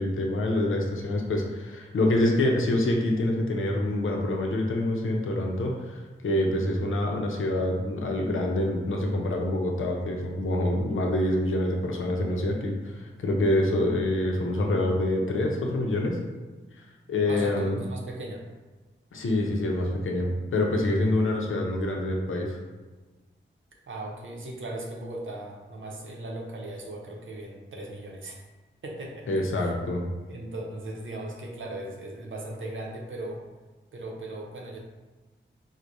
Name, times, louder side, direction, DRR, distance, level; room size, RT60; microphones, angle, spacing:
voice 1, 0.0-16.2 17.1-17.8 19.1-22.6 29.3-30.0, left 1 dB, 85° left, 0 dB, 0.6 m, -26 dB
voice 2, 17.2-18.4 23.9-28.4 28.8-29.3 29.6-29.7 30.3-33.4 33.9-34.8, right 1 dB, 75° right, -1 dB, 0.6 m, -37 dB
4.5 x 2.1 x 2.6 m, 1.2 s
wide cardioid pair, 75°, 20 cm